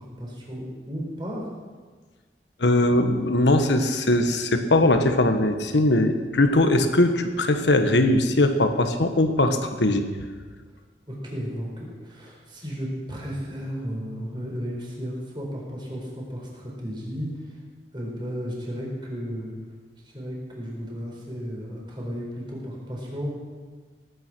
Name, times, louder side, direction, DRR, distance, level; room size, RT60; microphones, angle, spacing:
voice 1, 0.0-1.5 11.1-17.6 17.9-19.5 20.0-23.4, equal, 25° right, -3 dB, 4.3 m, -34 dB
voice 2, 2.6-10.0, left 1 dB, 85° left, 7 dB, 1.3 m, -20 dB
18.0 x 9.4 x 6.1 m, 1.5 s
head